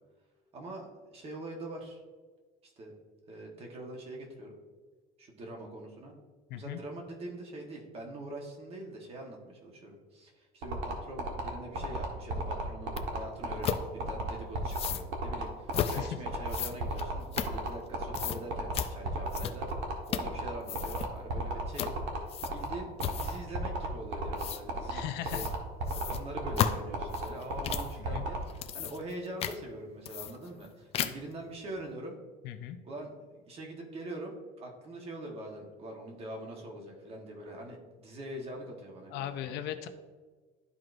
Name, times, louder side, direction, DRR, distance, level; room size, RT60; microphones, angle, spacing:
voice 1, 0.5-2.0 2.6-2.9 3.3-4.5 5.2-6.1 6.5-25.5 25.9-32.2 32.8-39.6, right 1 dB, 30° right, 1 dB, 1.3 m, -43 dB
sound 1, 10.6-28.4, right 1 dB, 70° right, 1.5 m, -33 dB
sound 2, 13.0-13.1 13.6-13.8 14.7-15.1 15.7-16.0 16.5-17.9 18.1-18.4 18.7-18.9 19.3-19.7 20.1-20.4 20.6-21.1 21.7-22.0 22.3-22.7 23.0-23.4 24.4-24.6 25.3-25.5 25.9-27.9 28.4-29.1 29.4-29.6 30.0-30.7 30.9-31.3, left 9 dB, 30° left, 0.4 m, -34 dB
voice 2, 24.9-25.4 28.1-28.2 32.4-32.8 39.1-39.9, left 11 dB, 65° left, 9 dB, 0.7 m, -38 dB
12.5 x 4.7 x 2.6 m, 1.4 s
cardioid pair, 175°, 19 cm